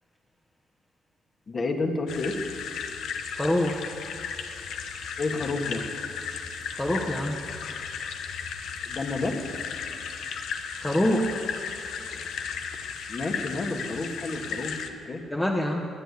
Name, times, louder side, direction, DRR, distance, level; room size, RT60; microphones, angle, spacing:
voice 1, 1.5-2.4 5.2-5.8 8.9-9.4 13.1-15.2, left 3 dB, 40° left, 3 dB, 1.9 m, -30 dB
sound 1, 2.1-14.9, left 6 dB, 75° left, 1.1 m, -35 dB
voice 2, 3.3-3.8 6.7-7.4 10.7-11.5 15.3-15.9, left 1 dB, 15° left, -2 dB, 1.3 m, -26 dB
21.0 x 8.0 x 8.4 m, 2.8 s
cardioid pair, 90°, 0 cm